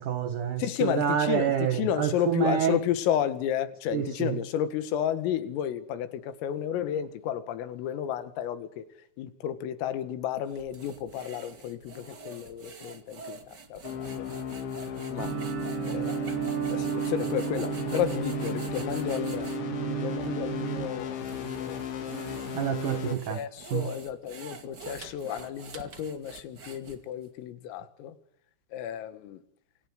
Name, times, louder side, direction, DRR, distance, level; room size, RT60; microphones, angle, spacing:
voice 1, 0.0-2.8 3.9-4.4 22.5-23.4 23.7-23.9, right 9 dB, 80° right, 1.8 m, -28 dB
voice 2, 0.6-8.9 9.2-14.4 15.1-15.3 15.8-16.3 16.7-19.5 19.8-22.2 23.1-28.2 28.7-29.4, left 10 dB, 85° left, 4.5 m, -32 dB
sound 1, 10.5-19.6 20.2-20.3 21.0-27.2, right 4 dB, 50° right, 1.3 m, -46 dB
sound 2, 13.8-23.2, left 7 dB, 65° left, 4.8 m, -36 dB
sound 3, 15.2-20.9, right 16 dB, 65° right, 4.1 m, -33 dB
28.0 x 25.5 x 8.0 m
omnidirectional pair, 5.8 m